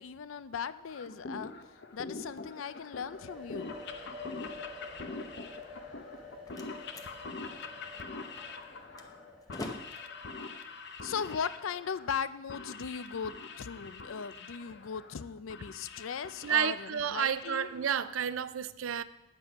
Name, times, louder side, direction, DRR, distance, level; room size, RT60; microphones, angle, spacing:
voice 1, 0.0-1.5 1.9-3.7 11.0-17.7, left 6 dB, 80° left, 0.5 m, -38 dB
sound 1, 0.9-18.3, left 3 dB, 55° left, 0.8 m, -45 dB
sound 2, 3.0-10.7, left 3 dB, 5° right, 2.0 m, -48 dB
Slam, 6.0-12.0, left 1 dB, 20° left, 0.7 m, -49 dB
voice 2, 16.4-19.0, right 8 dB, 85° right, 0.5 m, -31 dB
9.7 x 8.3 x 5.2 m
head